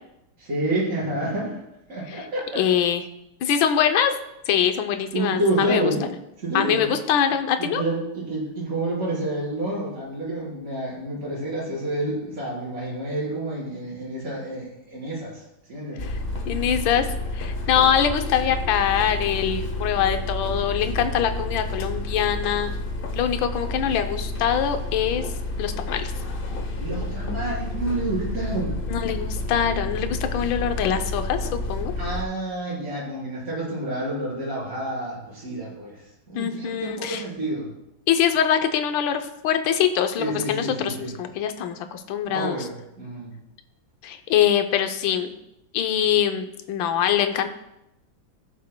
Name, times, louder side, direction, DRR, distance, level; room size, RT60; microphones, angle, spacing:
voice 1, 0.4-1.6 1.9-2.6 5.1-6.0 6.4-6.9 7.6-15.4 15.7-16.1 26.8-28.7 32.0-36.0 36.3-37.7 40.2-41.1 42.3-43.3, right 1 dB, 40° right, -8 dB, 4.5 m, -29 dB
voice 2, 2.5-3.0 3.4-4.1 4.5-5.9 6.5-7.8 16.0-16.2 16.5-17.0 17.3-22.7 23.1-25.3 25.6-26.1 28.9-31.9 36.3-37.2 38.1-42.7 44.0-45.3 45.7-47.5, left 9 dB, 80° left, 7 dB, 1.5 m, -23 dB
sound 1, 16.0-32.2, left 2 dB, 60° left, 0.5 m, -30 dB
16.0 x 7.4 x 2.2 m, 0.85 s
omnidirectional pair, 2.1 m